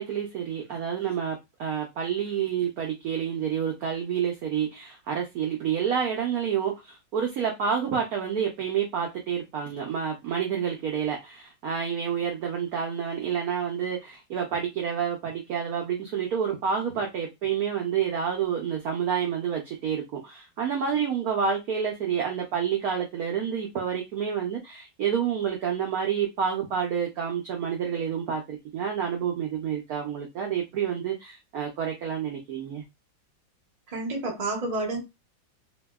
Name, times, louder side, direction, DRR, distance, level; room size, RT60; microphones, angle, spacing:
voice 1, 0.0-32.8, right 7 dB, 80° right, 0.8 m, -29 dB
voice 2, 33.9-35.0, right 2 dB, 60° right, 0.4 m, -29 dB
2.8 x 2.6 x 2.2 m
omnidirectional pair, 2.2 m